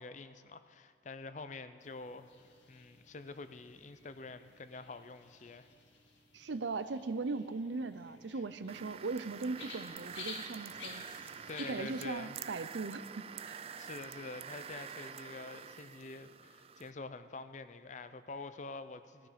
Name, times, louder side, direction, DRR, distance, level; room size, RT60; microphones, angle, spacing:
voice 1, 0.0-2.3 2.7-5.7 11.5-12.4 13.8-19.3, left 3 dB, 40° left, 11 dB, 0.5 m, -46 dB
sound 1, 1.8-12.1, left 4 dB, 85° left, 1.8 m, -53 dB
voice 2, 6.3-11.0 11.6-13.6, right 3 dB, 75° right, 13 dB, 0.6 m, -39 dB
sound 2, 8.7-16.9, right 7 dB, 30° right, 0.3 m, -47 dB
18.5 x 13.5 x 5.0 m, 2.3 s
head